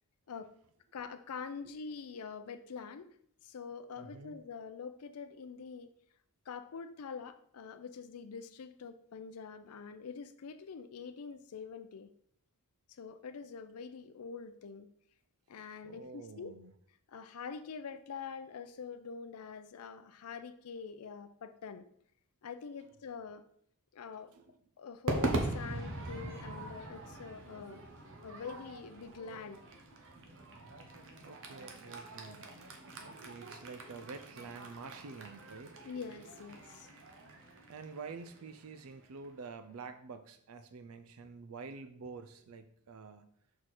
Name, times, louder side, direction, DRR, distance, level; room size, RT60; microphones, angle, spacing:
voice 1, 0.9-3.1 3.4-5.9 6.5-12.1 12.9-14.9 15.5-16.5 17.1-21.9 22.4-23.4 23.9-24.3 24.8-27.8 28.2-29.6 35.8-36.9, left 5 dB, 85° left, 9 dB, 0.5 m, -45 dB
voice 2, 4.0-4.4 15.8-16.7 24.3-24.4 31.2-32.5 33.0-35.8 37.7-43.3, right 4 dB, 75° right, 10 dB, 0.5 m, -48 dB
Crowd / Fireworks, 25.1-39.5, right 2 dB, 60° right, 1.1 m, -42 dB
6.3 x 4.6 x 4.2 m, 0.65 s
head